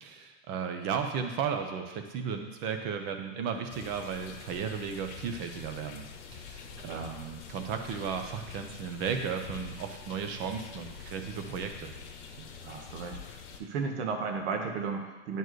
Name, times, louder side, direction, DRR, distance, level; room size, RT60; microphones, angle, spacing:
voice 1, 0.0-11.9, right 6 dB, 30° right, 6 dB, 0.7 m, -35 dB
sound 1, 3.7-13.6, left 5 dB, 65° left, 1.0 m, -46 dB
voice 2, 6.8-7.2 12.4-15.4, right 5 dB, 60° right, 3 dB, 1.3 m, -35 dB
10.5 x 4.5 x 3.1 m, 1.2 s
supercardioid pair, 150°, 37 cm